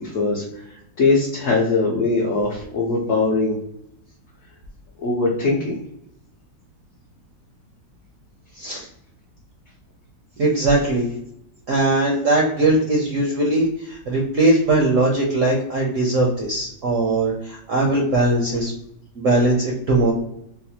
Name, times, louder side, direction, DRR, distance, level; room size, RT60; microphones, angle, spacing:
voice 1, 0.0-3.6 5.0-5.8, left 3 dB, 60° left, -4 dB, 0.9 m, -21 dB
voice 2, 8.6-8.9 10.4-11.1 11.7-18.7 19.2-20.1, right 2 dB, 65° right, -1 dB, 0.7 m, -20 dB
4.0 x 2.1 x 2.7 m, 0.76 s
omnidirectional pair, 1.9 m